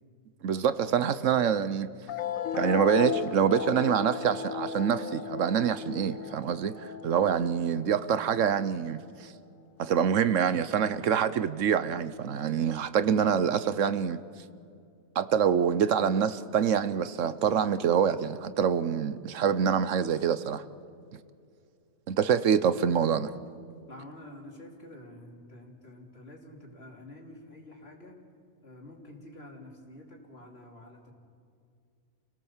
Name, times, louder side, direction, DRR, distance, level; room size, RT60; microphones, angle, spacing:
voice 1, 0.4-1.9 2.5-9.3 9.8-14.2 15.1-20.6 22.1-23.3, right 8 dB, 75° right, 13 dB, 1.1 m, -26 dB
sound 1, 2.1-9.1, left 7 dB, 80° left, 1.2 m, -35 dB
voice 2, 23.9-28.1 28.6-31.1, left 1 dB, 50° left, 0 dB, 3.5 m, -48 dB
29.5 x 18.0 x 7.2 m, 2.4 s
omnidirectional pair, 1.4 m